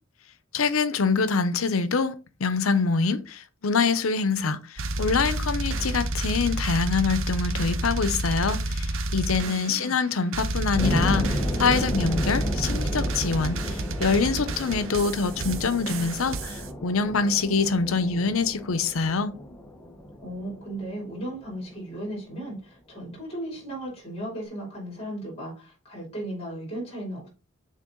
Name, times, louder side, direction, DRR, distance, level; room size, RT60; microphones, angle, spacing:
voice 1, 0.5-2.1 2.4-4.6 5.0-19.3, left 4 dB, 85° left, 0.7 m, -25 dB
sound 1, 4.8-10.0 10.3-16.7, right 1 dB, 70° right, 0.7 m, -30 dB
voice 2, 9.4-9.9 20.2-27.3, right 1 dB, 30° left, 3.2 m, -36 dB
sound 2, 10.7-21.5, equal, 15° left, 0.8 m, -33 dB
6.5 x 3.9 x 3.7 m
head